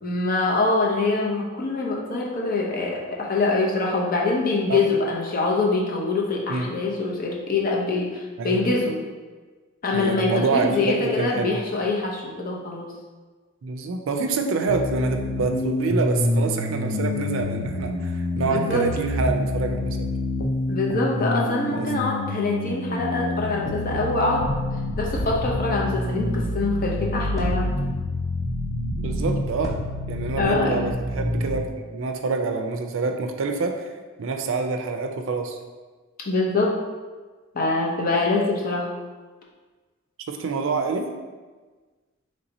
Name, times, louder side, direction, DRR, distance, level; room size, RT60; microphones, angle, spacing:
voice 1, 0.0-9.0 9.8-12.9 18.4-18.8 20.7-24.5 25.0-27.7 30.4-30.8 36.2-36.8 37.5-38.9, left 3 dB, 45° left, -1 dB, 0.7 m, -24 dB
voice 2, 8.4-8.7 9.9-11.6 13.6-20.1 21.7-21.9 29.0-29.7 30.1-33.9 34.2-35.6 40.3-41.1, right 4 dB, 65° right, 5 dB, 0.4 m, -26 dB
sound 1, 14.7-31.6, left 1 dB, 85° left, 0.5 m, -27 dB
sound 2, 25.1-25.8 27.3-28.2 29.6-30.5, equal, 15° left, 0.8 m, -33 dB
3.3 x 2.8 x 4.0 m, 1.4 s
head